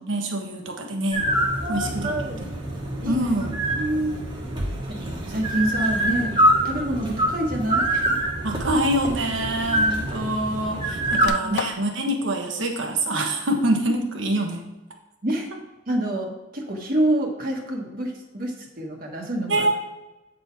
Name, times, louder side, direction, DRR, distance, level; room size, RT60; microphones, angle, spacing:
voice 1, 0.0-1.3 1.7-2.1 2.4-2.5 3.0-3.5 8.4-14.6 19.5-19.7, right 1 dB, 80° right, 3 dB, 1.1 m, -25 dB
sound 1, 1.1-11.3, right 1 dB, 25° right, 1.2 m, -25 dB
voice 2, 1.6-2.4 3.0-3.2 3.8-4.2 5.3-8.2 9.7-10.0 11.2-11.6 15.2-15.5 15.9-19.7, right 1 dB, 45° right, 0 dB, 1.2 m, -27 dB
sound 2, 6.3-6.6 7.6-7.7 9.1-9.2 9.5-10.6 10.9-11.9, left 7 dB, 60° left, 0.3 m, -35 dB
8.8 x 4.0 x 4.5 m, 1.0 s
head